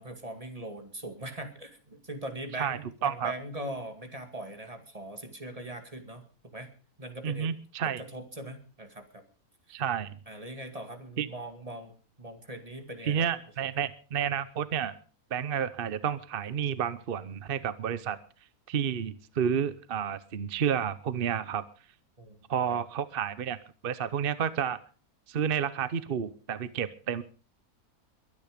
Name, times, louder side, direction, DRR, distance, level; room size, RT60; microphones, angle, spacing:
voice 1, 0.0-6.7 7.0-7.5 7.8-9.2 9.7-9.8 10.3-13.4 22.2-22.4 22.7-22.8, right 1 dB, 25° right, 6 dB, 2.2 m, -41 dB
voice 2, 2.6-3.3 7.2-8.0 9.7-10.2 11.2-11.3 13.0-14.9 15.3-18.2 18.7-21.6 22.5-23.6 23.8-24.8 25.3-27.2, right 8 dB, 45° right, 15 dB, 0.9 m, -30 dB
22.5 x 9.8 x 5.1 m, 0.38 s
omnidirectional pair, 1.6 m